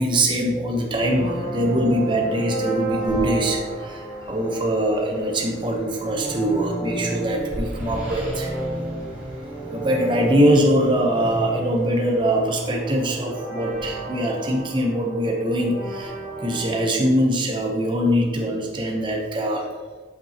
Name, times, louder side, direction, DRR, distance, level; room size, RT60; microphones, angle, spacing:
voice 1, 0.0-8.6 9.7-19.7, equal, 25° right, 1 dB, 0.8 m, -22 dB
sound 1, 1.0-16.9, right 2 dB, 10° right, 2.1 m, -32 dB
8.3 x 5.7 x 2.9 m, 1.5 s
head